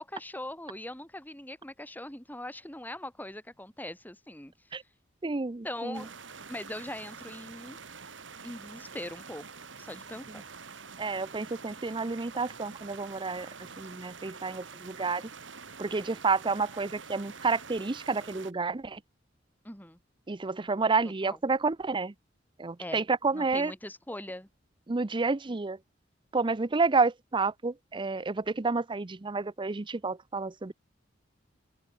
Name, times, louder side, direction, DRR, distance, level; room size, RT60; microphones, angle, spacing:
voice 1, 0.0-4.5 5.6-6.2 6.5-7.8 8.4-10.4 19.6-20.0 21.2-21.4 22.8-24.5, left 1 dB, 10° left, 6.5 m, -41 dB
voice 2, 5.2-6.0 11.0-13.5 13.8-15.3 15.8-19.0 20.3-22.1 22.6-23.7 24.9-25.8 26.3-30.7, right 4 dB, 25° right, 0.6 m, -30 dB
sound 1, 5.9-18.5, right 5 dB, 90° right, 2.8 m, -47 dB
head